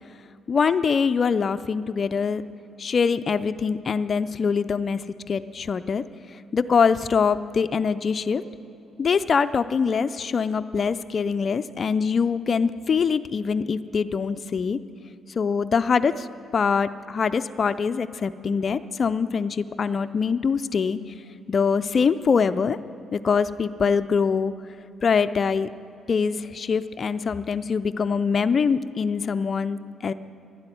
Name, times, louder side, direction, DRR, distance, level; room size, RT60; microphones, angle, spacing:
voice 1, 0.5-2.4 2.8-5.0 5.3-6.0 6.5-8.4 9.0-14.8 15.4-16.1 16.5-21.0 21.5-22.8 23.1-24.5 25.0-25.7 26.1-30.1, left 5 dB, 45° left, 11 dB, 0.5 m, -23 dB
12.0 x 10.5 x 9.1 m, 3.0 s
cardioid pair, 90°, 0 cm